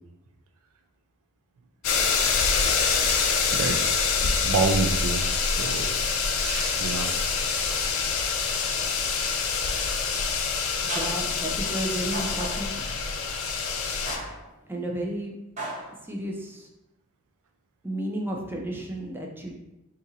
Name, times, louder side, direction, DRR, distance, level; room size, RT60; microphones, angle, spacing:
sound 1, 1.8-14.2, left 5 dB, 75° left, 0.4 m, -26 dB
voice 1, 3.5-3.8 4.2-6.0 6.4-7.2, right 4 dB, 80° right, 6 dB, 0.4 m, -28 dB
sound 2, 6.5-8.0 9.5-10.0 10.9-11.4 12.1-12.9 14.1-14.5 15.6-15.9, right 1 dB, 35° right, 0.7 m, -38 dB
voice 2, 10.8-13.0 14.7-15.4 16.0-16.7 17.8-19.5, right 1 dB, 10° right, 0 dB, 0.4 m, -32 dB
2.8 x 2.5 x 4.0 m, 0.90 s
head